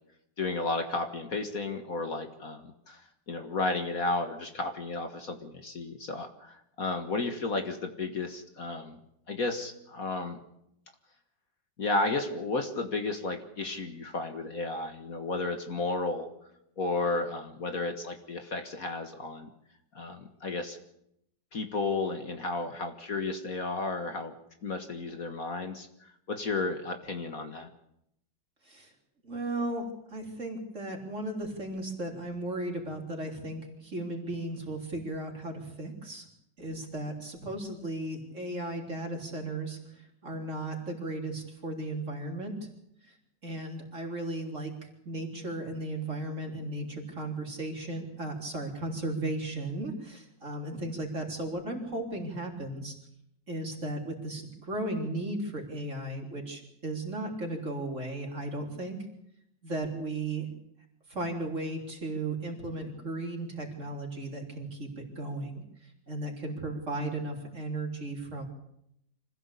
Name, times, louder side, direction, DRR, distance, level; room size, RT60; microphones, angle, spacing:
voice 1, 0.4-3.0 3.3-9.0 9.3-10.4 11.8-16.3 16.8-19.5 19.9-20.8 21.5-24.3 24.6-27.7, left 3 dB, 50° left, 6 dB, 2.0 m, -33 dB
voice 2, 29.2-36.3 36.6-42.6 43.0-43.2 43.4-52.9 53.5-59.0 59.6-60.5 61.1-68.5, right 2 dB, 40° right, 1 dB, 4.2 m, -36 dB
25.5 x 15.5 x 8.4 m, 0.78 s
omnidirectional pair, 2.0 m